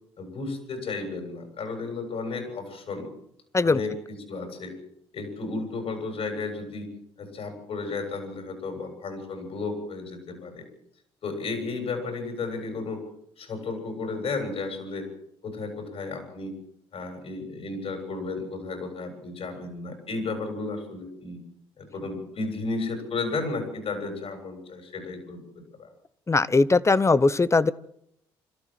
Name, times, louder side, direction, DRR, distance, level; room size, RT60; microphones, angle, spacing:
voice 1, 0.2-3.1 3.6-3.9 4.3-4.7 5.1-6.9 7.2-10.6 11.2-13.0 13.4-15.1 15.4-16.6 16.9-21.4 21.8-25.9, left 3 dB, 60° left, 6 dB, 7.9 m, -33 dB
voice 2, 26.3-27.7, left 3 dB, 25° left, 17 dB, 1.1 m, -20 dB
28.5 x 14.0 x 7.7 m, 0.73 s
supercardioid pair, 65°, 11 cm